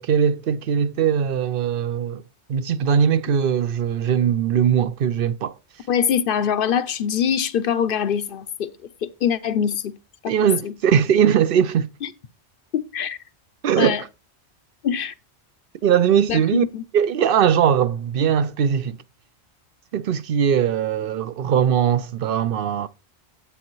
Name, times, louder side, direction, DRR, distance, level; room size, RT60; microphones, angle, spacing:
voice 1, 0.0-2.2 2.5-5.5 10.3-11.9 13.6-14.0 15.8-16.6 16.9-19.0 19.9-22.9, right 8 dB, 60° right, 0.7 m, -20 dB
voice 2, 5.9-8.7 9.0-9.9 10.2-10.3 10.6-10.7 12.0-12.1 12.7-13.2 13.8-14.0 14.8-15.1 16.3-16.8, left 8 dB, 60° left, 0.7 m, -23 dB
9.9 x 8.5 x 3.1 m
omnidirectional pair, 1.1 m